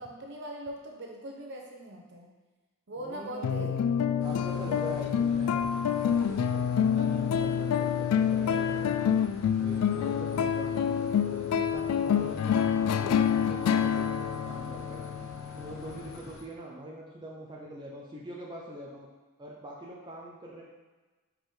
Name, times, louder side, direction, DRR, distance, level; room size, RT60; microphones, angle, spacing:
voice 1, 0.0-2.3 2.9-3.7, right 1 dB, 55° right, 1 dB, 0.9 m, -40 dB
voice 2, 3.0-5.7 6.1-9.1 9.6-15.0 15.6-19.1 19.4-20.6, right 1 dB, 20° right, -4 dB, 0.7 m, -43 dB
sound 1, 3.4-16.2, left 8 dB, 85° left, 0.3 m, -27 dB
sound 2, 4.2-16.4, left 2 dB, 65° left, 0.8 m, -48 dB
5.2 x 4.7 x 3.8 m, 1.2 s
head